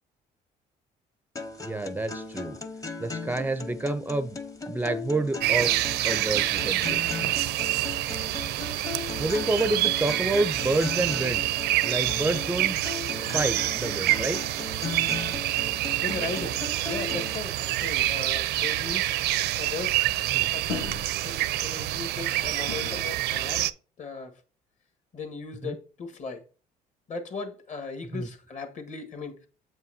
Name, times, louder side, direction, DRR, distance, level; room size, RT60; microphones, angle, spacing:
sound 1, 1.4-17.4, left 4 dB, 20° left, 0.8 m, -38 dB
voice 1, 1.6-2.5 3.0-4.4 4.7-5.8 6.0-7.0 9.2-11.5 11.8-12.8 13.1-14.4 20.3-20.5 25.6-25.8 28.1-28.3, right 2 dB, 10° right, 0.4 m, -28 dB
sound 2, 5.4-23.7, right 15 dB, 80° right, 0.5 m, -27 dB
voice 2, 16.0-19.1 19.6-20.0 20.5-20.7 21.2-23.7 24.0-24.3 25.1-26.4 27.1-29.5, left 4 dB, 45° left, 1.4 m, -37 dB
sound 3, 16.4-23.0, left 6 dB, 75° left, 1.7 m, -43 dB
7.5 x 5.5 x 2.7 m
cardioid pair, 110°, 17 cm